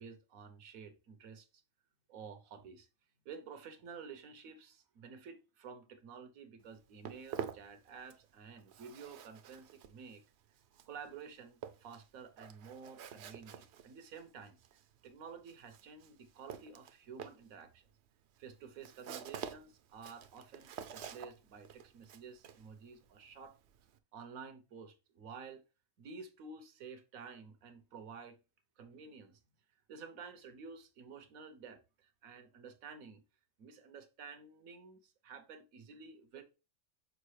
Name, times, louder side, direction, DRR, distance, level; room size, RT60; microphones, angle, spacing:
voice 1, 0.0-1.5 2.1-2.9 3.2-10.2 10.9-14.6 15.0-17.9 18.4-23.6 24.1-25.6 26.0-28.4 28.8-29.4 29.9-33.2 33.6-36.4, right 5 dB, 85° right, 1.3 m, -51 dB
Walk footsteps, 6.6-8.3 8.6-24.0, right 8 dB, 60° right, 0.8 m, -49 dB
6.5 x 4.7 x 3.2 m
omnidirectional pair, 1.4 m